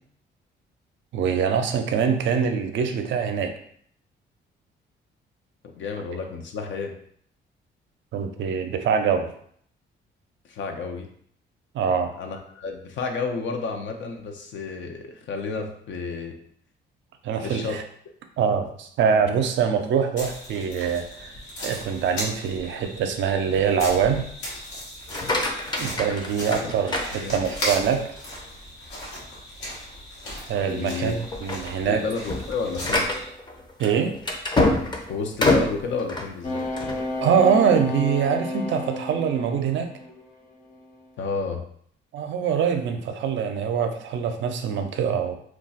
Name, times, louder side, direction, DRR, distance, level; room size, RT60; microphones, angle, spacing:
voice 1, 1.1-3.5 8.1-9.3 11.7-12.1 17.2-17.8 18.4-21.3 21.6-24.3 25.8-28.1 30.5-32.0 33.8-34.1 37.2-39.9 42.1-45.4, right 7 dB, 70° right, 6 dB, 0.5 m, -24 dB
voice 2, 5.7-6.9 10.5-11.1 12.2-16.3 17.4-17.8 26.6-26.7 27.1-27.4 30.7-31.1 31.9-33.1 35.1-36.6 41.2-41.6, left 4 dB, 70° left, 4 dB, 0.6 m, -31 dB
sound 1, 20.2-33.3, equal, 90° left, 1.0 m, -37 dB
sound 2, 25.0-27.8 28.3-28.7 29.2-29.3 29.7-29.9 30.5-30.8 31.2-37.0, left 2 dB, 20° left, 0.6 m, -26 dB
sound 3, 36.4-40.2 40.7-41.0, left 1 dB, 45° left, 0.9 m, -31 dB
2.3 x 2.3 x 3.9 m, 0.63 s
cardioid pair, 90°, 20 cm